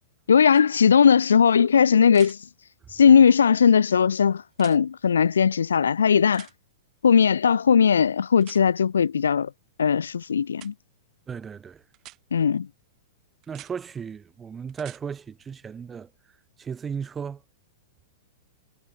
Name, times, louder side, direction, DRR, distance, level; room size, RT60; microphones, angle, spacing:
voice 1, 0.3-2.4 2.9-6.5 7.0-9.5 9.8-10.7 12.3-12.7, left 7 dB, 70° left, 0.3 m, -18 dB
sound 1, 0.5-0.6 2.1-2.4 4.5-4.8 6.3-6.5 8.4-8.6 10.5-10.7 11.9-12.2 13.4-13.7 14.7-15.0 17.1-17.2, right 17 dB, 35° right, 4.2 m, -46 dB
voice 2, 11.3-11.8 13.5-16.1 16.6-17.4, right 6 dB, 15° right, 5.6 m, -35 dB
figure-of-eight pair, 100°, 0 cm